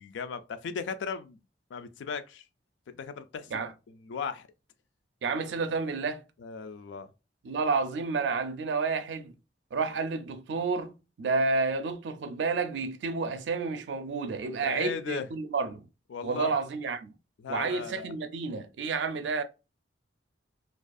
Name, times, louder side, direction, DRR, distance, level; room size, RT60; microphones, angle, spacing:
voice 1, 0.0-1.4 1.7-2.4 2.9-4.5 6.4-7.1 14.6-15.3 16.1-16.5 17.4-18.1, left 6 dB, 85° left, 0.3 m, -37 dB
voice 2, 5.2-6.2 7.4-9.3 9.7-15.9 16.2-17.1 17.5-19.4, right 4 dB, 75° right, 0.4 m, -30 dB
2.3 x 2.3 x 2.4 m
head